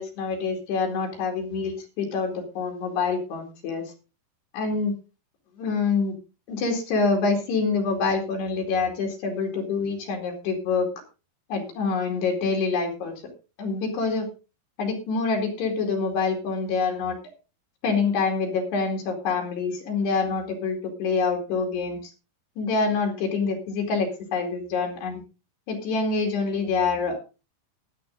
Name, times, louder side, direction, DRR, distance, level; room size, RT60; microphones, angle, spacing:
voice 1, 0.0-3.9 4.5-5.0 5.6-6.1 6.5-10.9 11.5-13.1 13.6-14.3 14.8-17.2 17.8-22.0 22.6-25.2 25.7-27.2, left 4 dB, 80° left, 2 dB, 4.6 m, -26 dB
13.0 x 11.0 x 3.9 m, 0.31 s
omnidirectional pair, 4.7 m